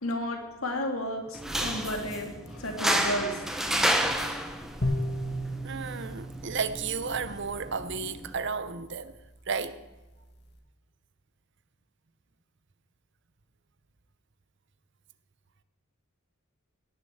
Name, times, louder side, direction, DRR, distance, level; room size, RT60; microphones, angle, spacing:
voice 1, 0.0-3.4, left 1 dB, 75° left, 2.4 m, -33 dB
sound 1, 1.3-8.3, right 1 dB, ahead, 1.1 m, -31 dB
sound 2, 4.8-8.1, equal, 50° left, 1.9 m, -34 dB
voice 2, 5.6-9.2 9.5-9.8, right 5 dB, 55° right, 0.8 m, -33 dB
17.5 x 6.8 x 8.0 m
head